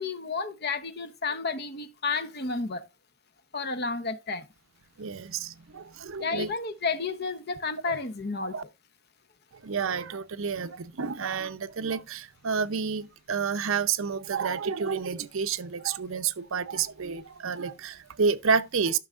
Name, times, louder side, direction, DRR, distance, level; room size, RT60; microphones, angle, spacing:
voice 1, 0.0-2.9 3.5-4.5 6.2-8.6, left 4 dB, 45° left, 0.8 m, -31 dB
voice 2, 5.0-6.5 7.9-8.0 8.5-8.6 9.6-19.0, right 5 dB, 65° right, 0.6 m, -29 dB
12.5 x 6.2 x 2.4 m
head